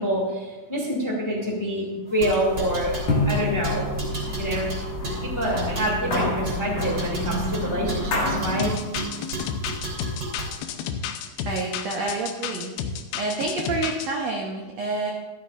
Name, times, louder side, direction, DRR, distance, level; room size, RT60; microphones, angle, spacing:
voice 1, 0.0-3.8 4.4-4.7 5.2-9.6, equal, 15° left, -3 dB, 1.2 m, -27 dB
sound 1, 2.1-10.6, right 2 dB, 30° right, 3.5 m, -34 dB
sound 2, 2.2-8.7, left 1 dB, 50° left, 2.5 m, -28 dB
sound 3, 8.6-14.1, left 7 dB, 80° left, 2.6 m, -31 dB
voice 2, 11.5-12.7 13.1-15.1, right 3 dB, 75° right, -1 dB, 1.6 m, -28 dB
13.5 x 13.5 x 2.5 m, 1.2 s
omnidirectional pair, 4.5 m